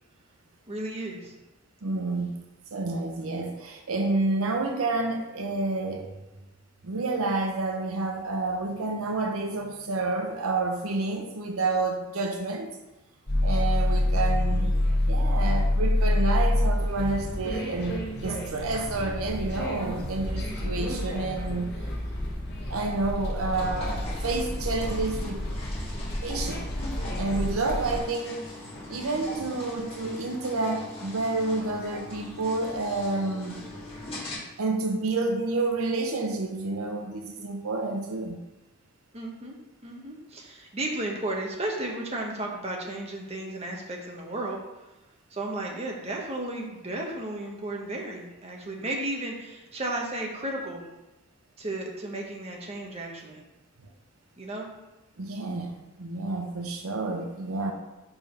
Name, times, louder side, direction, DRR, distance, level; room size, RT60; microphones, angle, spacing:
voice 1, 0.7-1.3 20.9-21.0 39.1-39.5 39.8-44.6 45.3-50.8 51.6-53.4 54.4-54.7, right 1 dB, 30° right, 0 dB, 1.0 m, -34 dB
voice 2, 1.8-2.4 2.7-6.1 6.8-12.8 13.4-18.0 18.2-21.7 22.7-25.4 26.2-26.7 27.2-28.6 28.9-33.7 34.6-38.4 55.2-57.7, right 3 dB, 70° right, 3 dB, 0.7 m, -29 dB
sound 1, 13.3-28.0, left 1 dB, 50° left, 1.4 m, -28 dB
sound 2, 23.5-34.4, left 1 dB, 25° left, 2.4 m, -41 dB
5.0 x 4.9 x 5.2 m, 1.0 s
head